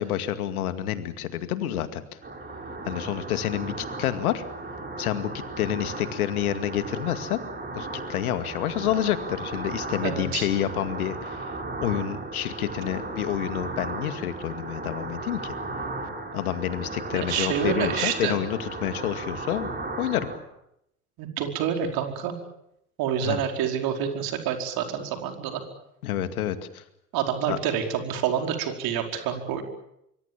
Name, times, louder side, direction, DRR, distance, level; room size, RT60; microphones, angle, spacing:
voice 1, 0.0-2.2 2.8-4.4 5.0-5.3 5.6-7.4 7.7-15.5 16.3-19.7 20.0-20.3 23.2-23.4 26.0-26.8 27.5-27.6, left 11 dB, 70° left, 11 dB, 2.3 m, -28 dB
sound 1, 2.2-20.4, right 2 dB, 20° right, 7.9 m, -36 dB
voice 2, 10.0-10.5 17.1-18.4 21.2-22.3 23.0-25.6 27.1-29.6, right 9 dB, 50° right, 5 dB, 4.9 m, -28 dB
25.0 x 24.5 x 7.4 m, 0.79 s
figure-of-eight pair, 75°, 45 cm